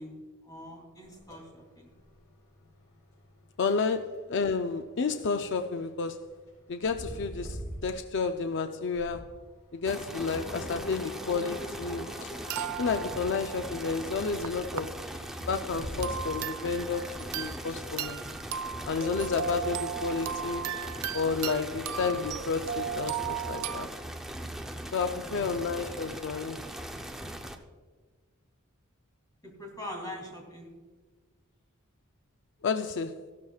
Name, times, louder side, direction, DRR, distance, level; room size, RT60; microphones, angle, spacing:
voice 1, 0.0-1.9 25.0-25.5 29.4-30.7, left 1 dB, 20° left, 2.9 m, -43 dB
sound 1, 1.0-19.9, equal, 80° left, 4.0 m, -46 dB
voice 2, 3.6-6.2 6.7-9.3 9.7-12.3 12.8-15.0 15.5-18.2 18.8-20.7 21.1-23.9 24.9-26.7 32.6-33.2, left 5 dB, 60° left, 0.5 m, -31 dB
sound 2, 9.8-27.6, right 1 dB, ahead, 0.6 m, -40 dB
sound 3, 12.5-14.8 15.3-15.5 16.0-17.7 18.0-23.9, right 9 dB, 85° right, 0.4 m, -36 dB
15.0 x 13.0 x 2.4 m
head